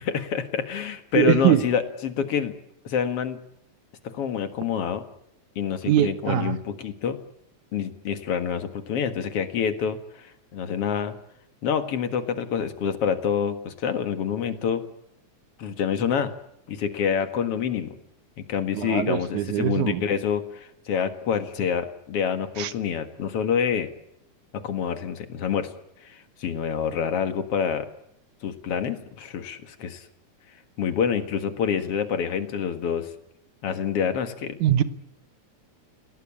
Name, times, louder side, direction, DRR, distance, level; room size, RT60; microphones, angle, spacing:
voice 1, 0.0-2.5 2.9-3.4 4.0-5.0 5.6-7.2 7.7-11.2 11.6-14.8 15.6-16.3 16.7-17.9 18.5-23.9 24.5-25.7 26.1-27.9 28.4-30.0 30.8-33.1 33.6-34.6, left 7 dB, 55° left, 8 dB, 2.5 m, -27 dB
voice 2, 1.1-1.6 5.9-6.6 18.7-20.0 22.6-22.7 34.6-34.8, right 12 dB, 80° right, 12 dB, 2.5 m, -22 dB
29.0 x 17.5 x 8.6 m, 0.76 s
omnidirectional pair, 3.4 m